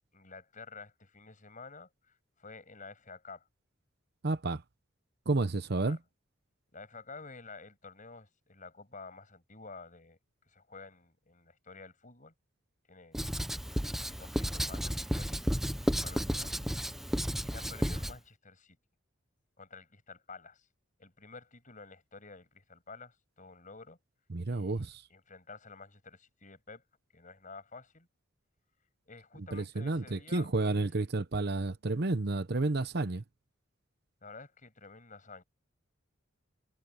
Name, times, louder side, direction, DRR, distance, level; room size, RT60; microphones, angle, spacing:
voice 1, 0.1-3.5 5.8-6.0 6.7-10.2 10.5-12.3 12.9-13.2 13.7-15.4 15.8-16.5 17.1-17.2 17.4-18.8 19.6-20.7 21.0-24.0 24.5-26.8 27.1-28.1 29.1-30.5 30.8-30.9 34.2-35.4, left 4 dB, 40° left, 7.3 m, -51 dB
voice 2, 4.2-4.6 5.3-6.0 24.3-25.0 29.5-33.2, right 2 dB, 55° right, 0.9 m, -31 dB
Writing, 13.1-18.1, equal, ahead, 0.9 m, -33 dB
head